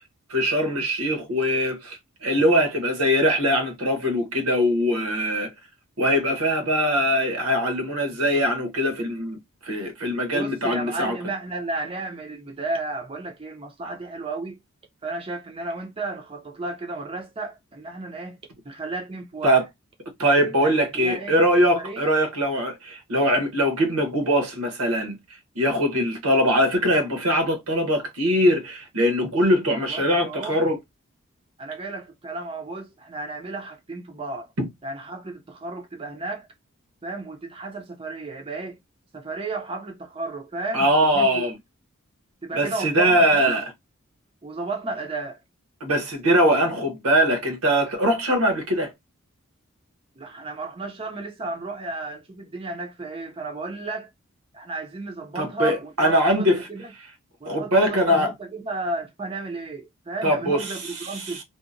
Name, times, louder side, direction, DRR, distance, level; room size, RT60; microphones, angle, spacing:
voice 1, 0.3-5.5 6.0-11.2 19.4-19.6 20.2-25.2 25.5-30.8 34.6-34.7 40.7-41.6 42.6-43.6 45.8-48.9 55.3-56.7 57.4-58.3 60.2-61.4, equal, 90° right, 0.9 m, -22 dB
voice 2, 10.3-14.6 15.0-18.4 18.6-19.6 20.6-21.4 21.7-22.1 29.7-30.6 31.6-34.5 34.8-36.5 37.0-38.8 39.1-40.9 41.1-41.5 42.4-43.5 44.4-45.4 50.2-54.1 54.5-56.9 57.4-61.4, right 2 dB, 25° right, 0.4 m, -33 dB
2.7 x 2.1 x 2.5 m
head